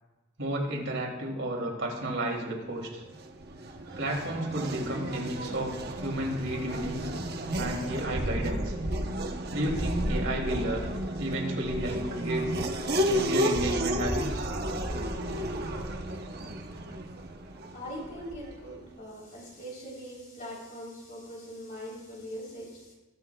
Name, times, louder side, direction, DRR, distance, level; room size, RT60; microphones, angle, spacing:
voice 1, 0.4-3.0 4.0-7.1 7.6-8.7 9.5-10.8 11.2-12.5 13.1-14.5, right 1 dB, 80° right, -1 dB, 2.7 m, -32 dB
Race car auto racing / Accelerating revving vroom, 3.0-18.7, right 1 dB, 55° right, 0.9 m, -32 dB
voice 2, 17.7-22.9, equal, 45° left, -3 dB, 3.5 m, -41 dB
21.0 x 7.6 x 2.3 m, 1.1 s
head